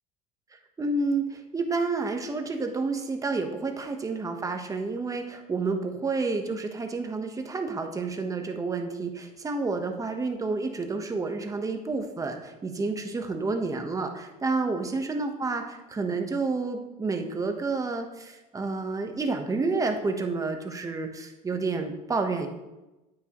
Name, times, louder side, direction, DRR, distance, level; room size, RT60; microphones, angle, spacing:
voice 1, 0.5-22.5, right 3 dB, 20° right, 5 dB, 1.1 m, -30 dB
9.3 x 8.8 x 3.1 m, 1.0 s
supercardioid pair, 115°, 18 cm